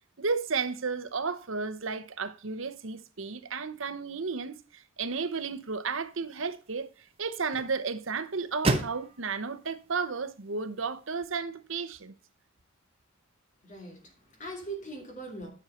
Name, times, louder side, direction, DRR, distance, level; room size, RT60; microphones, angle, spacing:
voice 1, 0.2-6.9 7.2-12.1, right 4 dB, 70° right, 0.9 m, -33 dB
sound 1, 5.1-11.3, right 2 dB, 30° right, 1.2 m, -37 dB
voice 2, 13.6-15.5, right 2 dB, 35° left, 2.8 m, -41 dB
10.5 x 6.4 x 4.3 m
head